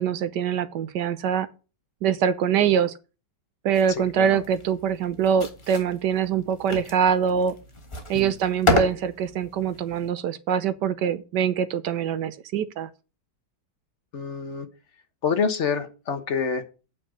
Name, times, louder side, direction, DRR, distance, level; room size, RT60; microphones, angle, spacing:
voice 1, 0.0-1.5 2.0-2.9 3.6-7.5 8.1-12.9, right 8 dB, 75° right, 1.4 m, -24 dB
sound 1, 3.7-10.1, left 2 dB, 20° left, 1.4 m, -31 dB
voice 2, 3.9-4.4 8.1-8.3 14.1-14.7 15.2-16.6, left 6 dB, 45° left, 1.4 m, -27 dB
8.5 x 5.3 x 7.2 m
omnidirectional pair, 1.9 m